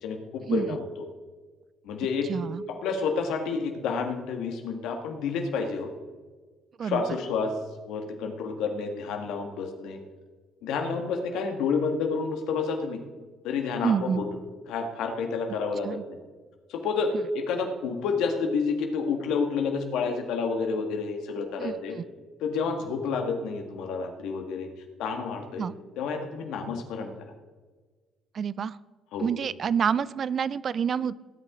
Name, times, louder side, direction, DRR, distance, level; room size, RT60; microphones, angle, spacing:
voice 1, 0.0-0.8 1.8-2.3 2.7-5.9 6.8-7.5 7.9-10.0 10.6-13.0 13.4-14.2 14.7-16.2 16.7-21.9 22.4-24.7 25.0-25.7 26.0-27.3 29.1-29.3, left 5 dB, 75° left, 4 dB, 1.8 m, -29 dB
voice 2, 2.3-2.6 6.8-7.2 13.8-14.2 15.8-16.0 21.6-22.0 25.6-25.7 28.3-28.8 29.2-31.2, right 7 dB, 55° right, 19 dB, 0.4 m, -28 dB
18.0 x 8.8 x 3.8 m, 1.4 s
supercardioid pair, 60°, 0 cm